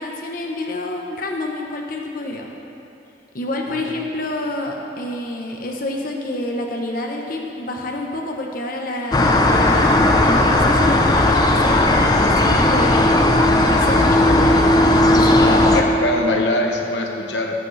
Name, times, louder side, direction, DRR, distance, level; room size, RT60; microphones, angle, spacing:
voice 1, 0.0-2.5 3.3-13.2 13.7-15.6, left 1 dB, 55° left, 1 dB, 0.9 m, -28 dB
sound 1, 9.1-15.8, left 1 dB, 25° left, 0.6 m, -15 dB
voice 2, 15.4-17.5, left 1 dB, 90° left, 2 dB, 1.0 m, -22 dB
14.5 x 8.8 x 3.2 m, 2.7 s
head